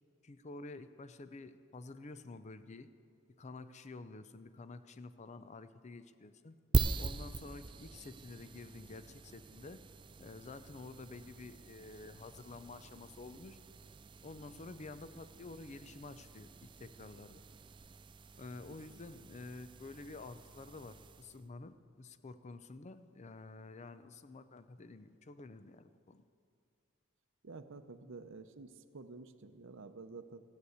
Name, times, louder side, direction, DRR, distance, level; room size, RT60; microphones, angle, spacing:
voice 1, 0.2-2.9 3.4-6.6 7.0-9.8 10.2-13.6 14.2-17.4 18.3-26.2, left 3 dB, 35° left, 12 dB, 0.5 m, -50 dB
sound 1, 6.7-21.5, right 4 dB, 25° right, 0.3 m, -42 dB
voice 2, 27.4-30.4, right 3 dB, 65° right, 10 dB, 0.7 m, -50 dB
14.5 x 8.4 x 8.0 m, 2.3 s
head